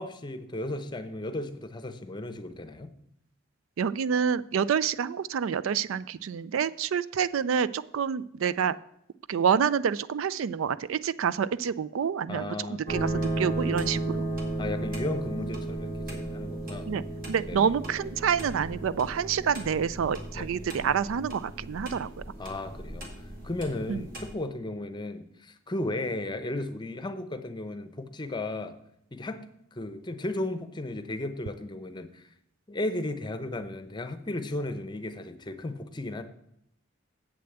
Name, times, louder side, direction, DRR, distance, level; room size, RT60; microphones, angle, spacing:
voice 1, 0.0-2.9 12.3-12.8 14.6-16.9 17.5-17.7 20.3-20.5 22.4-23.1 23.4-28.8 29.1-29.4 29.7-32.2 32.7-36.2, left 2 dB, 20° left, 10 dB, 0.7 m, -35 dB
voice 2, 3.8-8.8 9.3-13.1 13.4-14.3 16.9-17.0 17.3-22.1 23.9-24.0, right 7 dB, 75° right, 17 dB, 0.4 m, -27 dB
sound 1, 12.9-24.3, right 2 dB, 45° right, 2.2 m, -34 dB
7.8 x 6.9 x 7.8 m, 0.76 s
head